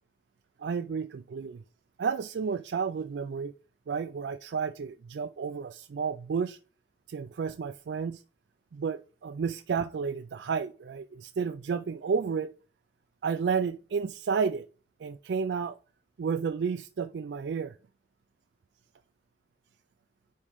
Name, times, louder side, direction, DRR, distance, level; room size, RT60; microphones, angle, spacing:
voice 1, 0.6-1.6 2.0-3.5 3.9-6.6 7.1-8.2 8.7-12.5 13.2-14.7 15.0-15.8 16.2-17.8, right 6 dB, 80° right, 0.4 m, -31 dB
9.7 x 3.6 x 3.5 m
head